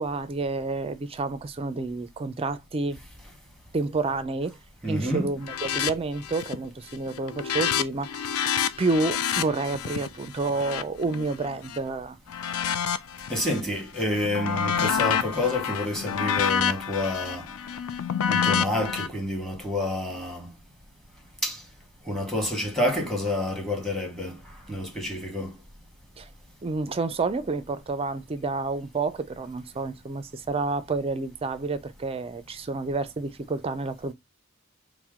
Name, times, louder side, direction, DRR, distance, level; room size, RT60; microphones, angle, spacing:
voice 1, 0.0-3.0 3.7-4.6 4.9-12.2 26.2-26.3 26.6-34.1, right 3 dB, 25° right, 0.4 m, -29 dB
voice 2, 4.8-5.3 13.3-17.5 18.3-20.5 21.4-21.6 22.1-24.4 24.7-25.5, left 1 dB, ahead, 1.2 m, -28 dB
sound 1, 5.4-5.9 6.2-6.6 7.0-11.8 12.3-13.6 14.0-19.1, left 8 dB, 80° left, 0.4 m, -28 dB
4.4 x 2.1 x 3.6 m
head